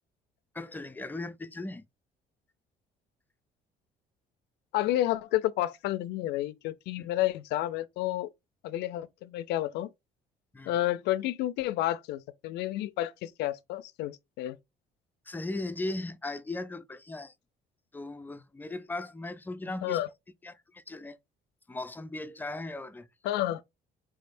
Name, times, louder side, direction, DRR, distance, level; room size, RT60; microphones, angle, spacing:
voice 1, 0.5-1.8 7.0-7.1 10.5-10.7 15.3-17.3 17.9-20.0 20.4-21.2 21.7-23.1, left 2 dB, 10° left, 0.4 m, -37 dB
voice 2, 4.7-8.3 8.6-9.9 10.7-14.6 19.8-20.1 23.2-23.6, left 14 dB, 80° left, 0.4 m, -30 dB
3.7 x 3.4 x 2.5 m
cardioid pair, 110°, 17 cm